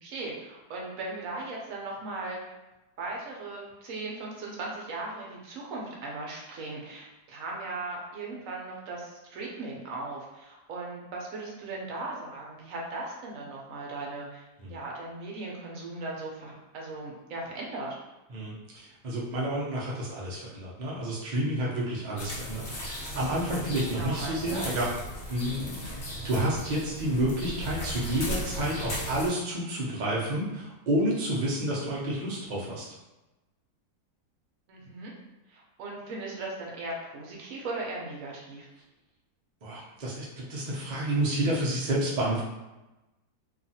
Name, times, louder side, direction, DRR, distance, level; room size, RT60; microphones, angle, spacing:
voice 1, 0.0-2.4 3.0-14.4 14.7-18.0 23.9-24.7 34.7-35.1 35.5-38.7, right 2 dB, 65° right, -2 dB, 0.9 m, -38 dB
voice 2, 18.3-24.9 25.3-25.9 26.2-32.9 39.6-42.4, right 1 dB, 80° right, -5 dB, 0.4 m, -30 dB
sound 1, 22.2-29.3, equal, 50° left, 0.9 m, -37 dB
2.8 x 2.4 x 2.7 m, 1.0 s
omnidirectional pair, 1.8 m